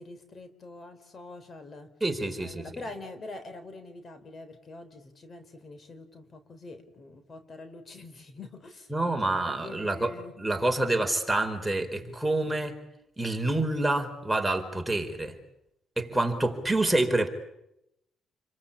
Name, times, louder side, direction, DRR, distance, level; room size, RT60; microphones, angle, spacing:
voice 1, 0.0-1.9 2.4-8.9 9.2-10.3 14.7-15.0 16.1-16.3, left 2 dB, 40° left, 3.8 m, -45 dB
voice 2, 2.0-2.7 8.9-12.8 13.2-15.3 16.0-17.3, right 2 dB, 5° right, 4.2 m, -27 dB
29.5 x 23.0 x 8.6 m
cardioid pair, 90°, 0 cm